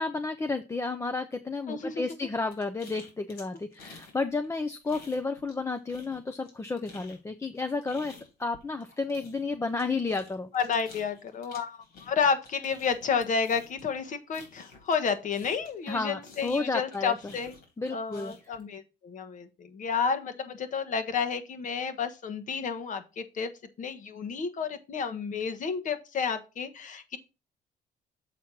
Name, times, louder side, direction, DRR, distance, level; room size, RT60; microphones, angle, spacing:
voice 1, 0.0-8.1 8.4-10.5 15.9-17.2 17.8-18.3, left 3 dB, 15° left, 8 dB, 0.6 m, -32 dB
voice 2, 1.7-2.0 10.5-17.5 17.9-23.5 23.8-27.2, left 6 dB, 50° left, 10 dB, 1.3 m, -31 dB
sound 1, 2.5-4.2 4.4-5.6 5.9-15.9 16.2-18.6, left 4 dB, 70° left, 3.5 m, -51 dB
7.3 x 4.3 x 6.1 m, 0.29 s
cardioid pair, 110°, 17 cm